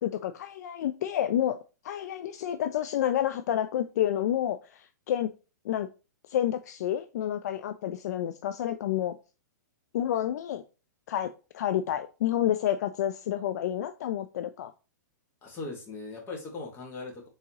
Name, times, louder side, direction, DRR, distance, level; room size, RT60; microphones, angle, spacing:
voice 1, 0.0-1.6 1.8-5.3 5.6-5.9 6.3-9.2 9.9-10.6 11.1-14.7, left 11 dB, 65° left, 0.4 m, -29 dB
voice 2, 15.4-17.3, left 3 dB, 25° left, 1.7 m, -39 dB
4.0 x 3.7 x 2.9 m
hypercardioid pair, 125°, 10 cm